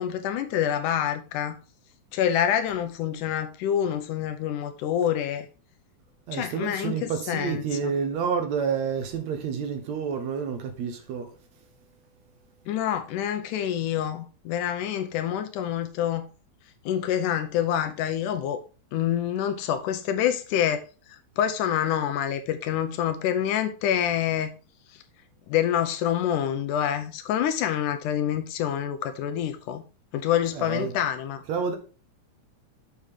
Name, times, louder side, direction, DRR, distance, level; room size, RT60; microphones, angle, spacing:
voice 1, 0.0-1.6 2.1-5.5 6.3-7.9 12.7-16.3 16.9-18.6 18.9-20.8 21.1-24.5 24.9-25.0 25.5-29.8 30.1-31.4, left 10 dB, 85° left, 2.2 m, -27 dB
voice 2, 6.3-11.3 30.5-30.9 31.5-31.8, right 6 dB, 65° right, 2.4 m, -29 dB
7.0 x 6.5 x 3.6 m
omnidirectional pair, 3.6 m